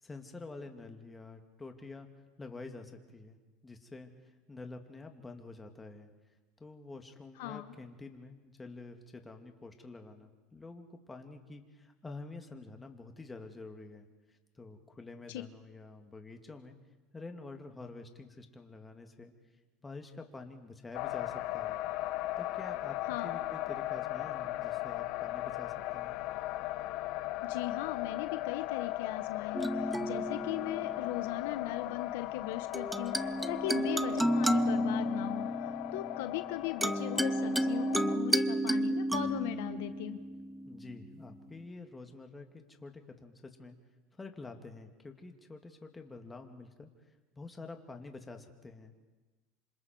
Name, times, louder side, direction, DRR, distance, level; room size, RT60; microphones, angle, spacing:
voice 1, 0.0-2.1 2.4-3.4 3.6-4.1 4.5-6.1 6.6-16.8 17.1-19.3 19.8-21.8 22.4-23.0 23.2-26.2 40.7-43.8 44.2-48.9, left 3 dB, 15° left, 4 dB, 2.6 m, -48 dB
voice 2, 7.4-7.8 15.3-15.4 23.1-23.4 27.4-40.2, left 14 dB, 75° left, 10 dB, 1.0 m, -39 dB
sound 1, 20.9-38.2, left 16 dB, 60° left, 0.7 m, -37 dB
sound 2, 29.5-31.3 32.7-41.2, right 1 dB, 5° right, 0.7 m, -32 dB
26.5 x 26.0 x 4.7 m, 1.3 s
supercardioid pair, 105°, 0 cm